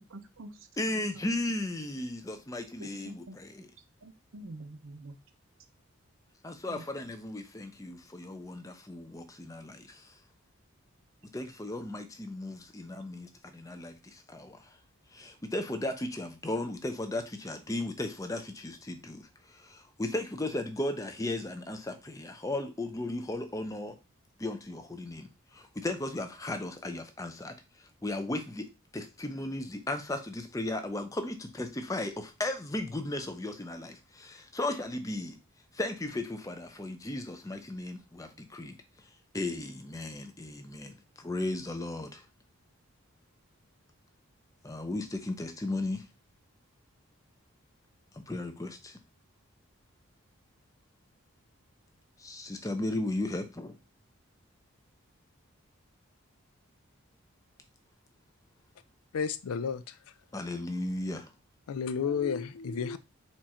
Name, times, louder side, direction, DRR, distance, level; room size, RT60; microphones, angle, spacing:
voice 1, 0.1-1.0 2.8-3.4 4.0-5.1 6.7-6.8, right 2 dB, 65° right, 0.7 m, -46 dB
voice 2, 0.8-3.7 6.4-10.1 11.3-14.7 15.1-19.2 19.5-23.9 24.4-27.6 28.0-28.7 28.9-35.4 35.7-38.8 39.3-42.2 44.6-46.0 48.3-49.0 52.2-53.8 60.3-61.3, left 2 dB, 15° left, 0.5 m, -36 dB
voice 3, 59.1-59.8 61.7-63.0, left 6 dB, 90° left, 0.4 m, -31 dB
4.4 x 2.5 x 4.2 m
head